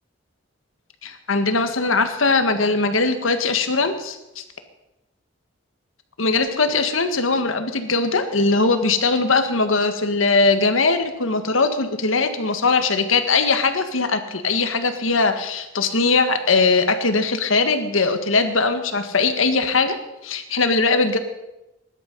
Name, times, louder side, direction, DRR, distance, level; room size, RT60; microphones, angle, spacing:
voice 1, 1.0-4.4 6.2-20.0 20.2-21.2, left 3 dB, 90° left, 8 dB, 1.7 m, -20 dB
20.5 x 11.5 x 5.4 m, 0.94 s
head